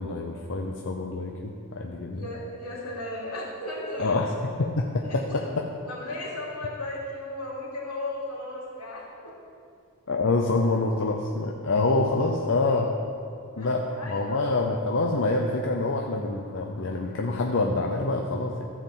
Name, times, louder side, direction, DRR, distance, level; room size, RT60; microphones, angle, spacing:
voice 1, 0.0-2.3 4.0-5.6 10.1-12.9 13.6-18.6, left 2 dB, 60° left, 1 dB, 0.7 m, -26 dB
voice 2, 2.2-4.2 5.0-5.4 5.9-9.3 13.6-13.7 13.9-14.5, left 1 dB, 85° left, -5 dB, 3.1 m, -35 dB
14.5 x 4.8 x 7.4 m, 2.4 s
head